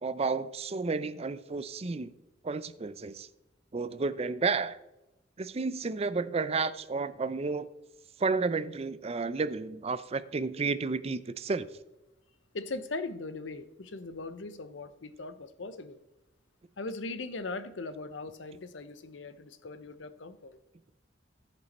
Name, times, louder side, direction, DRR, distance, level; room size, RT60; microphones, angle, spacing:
voice 1, 0.0-2.1 2.4-3.3 3.7-4.8 5.4-7.7 8.2-11.7, right 4 dB, 35° right, 0.5 m, -31 dB
voice 2, 12.5-16.0 16.8-20.6, left 3 dB, 90° left, 0.7 m, -39 dB
14.5 x 5.3 x 4.2 m
head